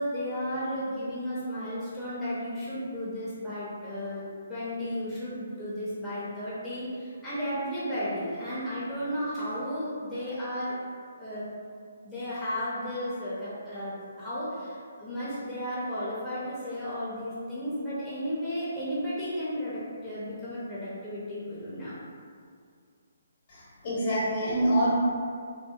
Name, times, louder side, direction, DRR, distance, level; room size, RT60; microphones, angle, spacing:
voice 1, 0.0-10.8 11.2-11.5 12.0-22.0, equal, 5° left, -13 dB, 0.5 m, -34 dB
voice 2, 23.5-24.9, right 1 dB, 45° left, -7 dB, 0.9 m, -26 dB
2.7 x 2.1 x 2.3 m, 2.2 s
figure-of-eight pair, 140°, 0 cm